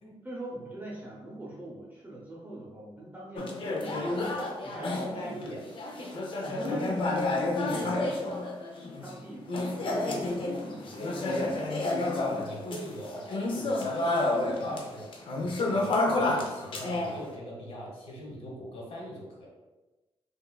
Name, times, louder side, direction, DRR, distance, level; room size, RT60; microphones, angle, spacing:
voice 1, 0.2-5.5 6.4-8.5 9.0-11.8, right 1 dB, 20° right, -4 dB, 0.7 m, -43 dB
sound 1, 3.4-9.1 9.5-14.9 15.1-17.2, left 2 dB, 60° left, 0.5 m, -30 dB
voice 2, 4.8-5.6 7.7-7.9 12.1-19.5, equal, 75° left, -3 dB, 1.4 m, -41 dB
5.3 x 2.4 x 2.3 m, 1.1 s
wide cardioid pair, 135°, 10 cm